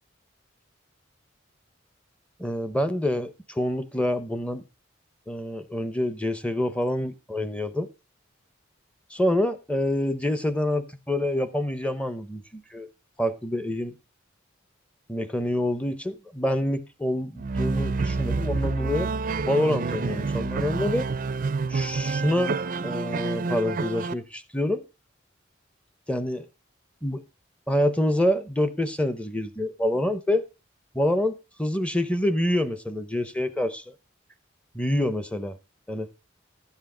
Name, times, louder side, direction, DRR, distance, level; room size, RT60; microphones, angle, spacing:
voice 1, 2.4-4.6 5.3-7.9 9.1-12.9 13.2-14.0 15.1-19.1 19.4-21.1 21.7-22.6 22.8-24.8 26.1-26.5 27.0-27.2 27.7-30.5 30.9-33.8 34.7-35.6 35.9-36.1, left 1 dB, 5° left, 0.7 m, -26 dB
sound 1, 17.4-24.1, right 4 dB, 45° right, 0.5 m, -28 dB
12.0 x 8.2 x 3.8 m
head